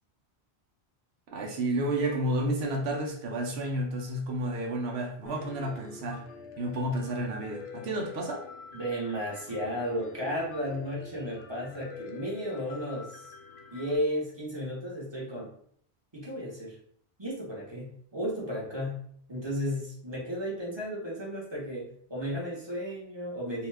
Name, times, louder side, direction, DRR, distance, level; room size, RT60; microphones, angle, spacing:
voice 1, 1.3-6.2 6.6-8.4, right 1 dB, 80° right, 0 dB, 0.9 m, -31 dB
Piano, 5.3-14.0, left 5 dB, 80° left, 0.8 m, -46 dB
voice 2, 8.7-13.3 13.7-15.5 16.1-16.8 17.2-23.7, equal, 25° right, -5 dB, 0.9 m, -34 dB
2.7 x 2.2 x 3.2 m, 0.63 s
omnidirectional pair, 1.1 m